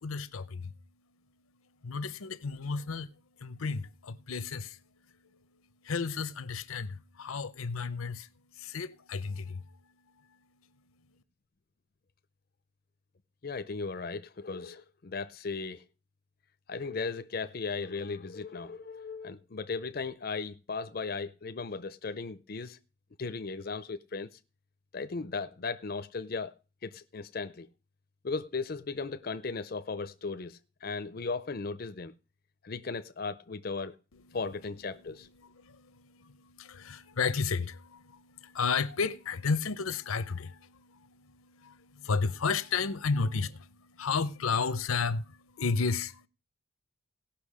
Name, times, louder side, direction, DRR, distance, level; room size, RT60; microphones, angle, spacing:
voice 1, 0.0-0.7 1.8-3.1 3.4-4.8 5.8-8.3 8.6-9.6 34.3-34.4 35.4-46.3, left 5 dB, 85° left, 0.7 m, -33 dB
voice 2, 13.4-15.8 16.7-22.8 23.2-24.3 24.9-26.5 26.8-27.7 28.2-32.1 32.6-33.9 34.3-35.3, left 4 dB, 45° left, 0.5 m, -36 dB
17.5 x 6.0 x 4.9 m
head